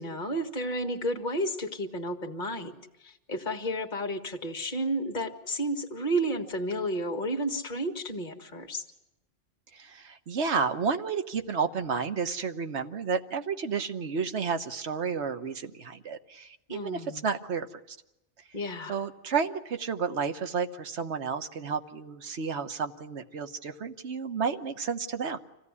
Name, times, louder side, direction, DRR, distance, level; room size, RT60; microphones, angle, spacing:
voice 1, 0.0-2.7 3.0-8.8 16.7-17.2 18.5-19.0, right 1 dB, 45° left, 4 dB, 1.8 m, -32 dB
voice 2, 9.7-18.0 18.9-25.4, right 5 dB, 70° right, 8 dB, 1.4 m, -31 dB
25.5 x 16.5 x 9.7 m, 0.93 s
omnidirectional pair, 1.2 m